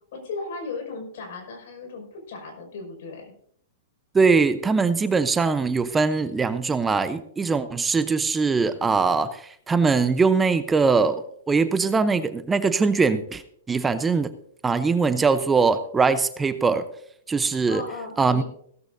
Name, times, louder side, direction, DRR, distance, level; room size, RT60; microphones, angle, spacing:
voice 1, 0.1-3.2 17.7-18.4, left 4 dB, 65° left, 3 dB, 5.8 m, -36 dB
voice 2, 4.1-13.4 13.7-14.3 14.6-16.8 17.3-17.8 18.2-18.4, right 4 dB, 15° right, 11 dB, 0.7 m, -21 dB
16.5 x 14.0 x 2.7 m, 0.64 s
hypercardioid pair, 120°, 0 cm